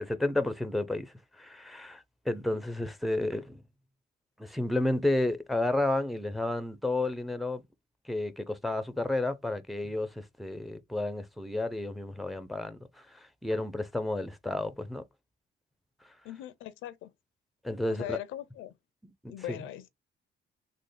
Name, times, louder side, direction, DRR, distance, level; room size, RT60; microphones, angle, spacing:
voice 1, 0.0-3.6 4.4-7.6 8.1-15.0 17.6-18.2 19.0-19.6, left 2 dB, ahead, 0.5 m, -32 dB
voice 2, 16.2-17.1 17.9-18.7 19.3-19.9, left 13 dB, 85° left, 0.5 m, -40 dB
3.6 x 2.0 x 3.2 m
cardioid pair, 90°, 20 cm